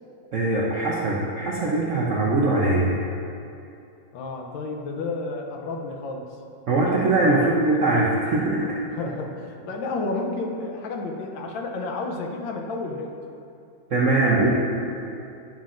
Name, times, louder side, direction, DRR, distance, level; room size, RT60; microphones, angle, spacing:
voice 1, 0.3-2.9 6.7-8.8 13.9-14.5, right 2 dB, 65° right, -5 dB, 0.7 m, -21 dB
voice 2, 4.1-6.3 7.4-7.5 8.9-13.1, left 3 dB, 80° left, 2 dB, 1.4 m, -31 dB
10.5 x 5.7 x 2.5 m, 2.6 s
omnidirectional pair, 2.1 m